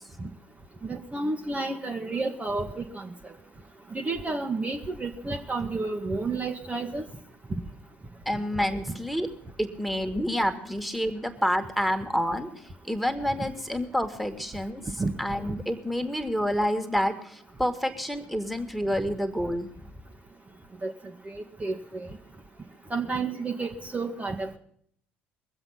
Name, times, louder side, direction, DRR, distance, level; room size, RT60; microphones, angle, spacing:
voice 1, 0.8-3.3 3.9-7.0 15.0-15.1 20.8-20.9 21.3-22.1 22.9-24.6, right 3 dB, 25° right, 1 dB, 1.5 m, -31 dB
voice 2, 8.3-9.3 9.6-12.5 12.8-14.8 15.2-19.9, equal, ahead, 7 dB, 2.1 m, -28 dB
21.5 x 7.8 x 5.8 m, 0.64 s
hypercardioid pair, 60°, 6 cm